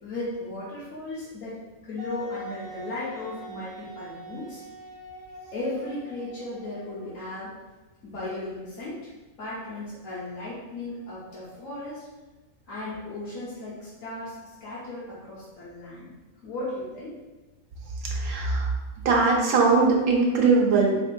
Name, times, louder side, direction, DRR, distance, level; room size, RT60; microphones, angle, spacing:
voice 1, 0.0-4.6 5.5-7.5 8.0-9.1 9.4-12.0 12.7-16.1 16.4-17.1, left 2 dB, 70° left, -9 dB, 1.2 m, -36 dB
Wind instrument woodwind instrument, 2.0-7.6, equal, 50° right, 1.2 m, -43 dB
voice 2, 18.1-18.7 19.0-21.0, right 4 dB, 85° right, -1 dB, 1.2 m, -20 dB
3.5 x 3.3 x 2.2 m, 1.1 s
omnidirectional pair, 1.5 m